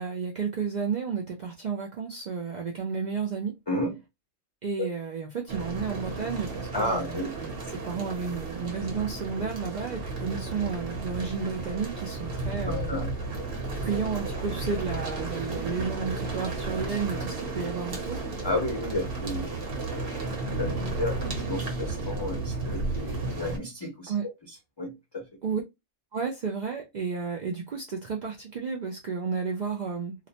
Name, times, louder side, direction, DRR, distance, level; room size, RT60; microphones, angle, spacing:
voice 1, 0.0-3.5 4.6-7.1 7.4-13.0 13.8-18.3 24.1-24.2 25.4-25.6 26.1-30.2, right 5 dB, 75° right, 0.4 m, -32 dB
voice 2, 3.7-4.0 4.8-4.9 6.7-7.3 12.6-13.5 18.4-21.2 21.5-24.1 24.5-25.2, left 1 dB, 30° left, 0.5 m, -32 dB
sound 1, 5.5-23.6, right 3 dB, 55° right, 0.9 m, -33 dB
2.4 x 2.1 x 2.7 m
omnidirectional pair, 1.3 m